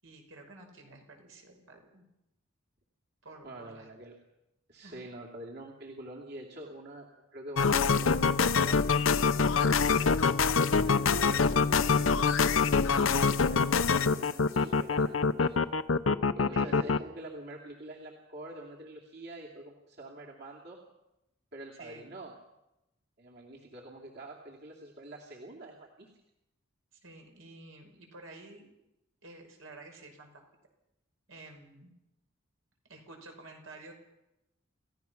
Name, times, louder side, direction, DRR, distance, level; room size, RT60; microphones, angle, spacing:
voice 1, 0.0-2.0 3.2-3.9 4.8-5.0 16.5-16.7 21.8-22.2 26.9-28.7 29.2-30.4 31.3-31.9 32.9-33.9, right 2 dB, 90° right, 2 dB, 5.8 m, -51 dB
voice 2, 3.4-4.1 4.7-8.9 9.4-10.2 10.7-15.8 16.3-20.8 21.5-22.4 23.2-26.1, right 1 dB, 55° right, -2 dB, 2.7 m, -46 dB
sound 1, 7.6-17.0, left 5 dB, 80° left, 0.7 m, -25 dB
29.0 x 15.5 x 5.9 m, 0.90 s
head